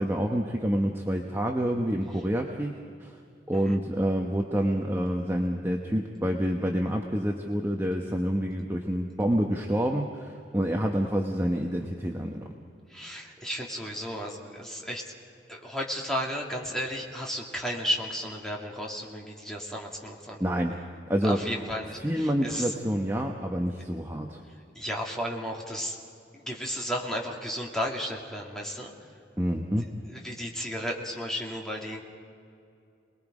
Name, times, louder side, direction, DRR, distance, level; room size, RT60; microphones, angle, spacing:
voice 1, 0.0-2.7 3.0-3.2 3.5-12.4 20.4-20.8 21.1-21.4 22.0-24.4 29.4-29.9, equal, 15° right, 1 dB, 1.0 m, -27 dB
voice 2, 12.9-15.1 15.5-20.4 21.2-22.7 24.7-26.0 26.3-28.9 30.1-32.0, equal, 5° left, -2 dB, 2.4 m, -33 dB
28.0 x 20.5 x 5.0 m, 2.5 s
head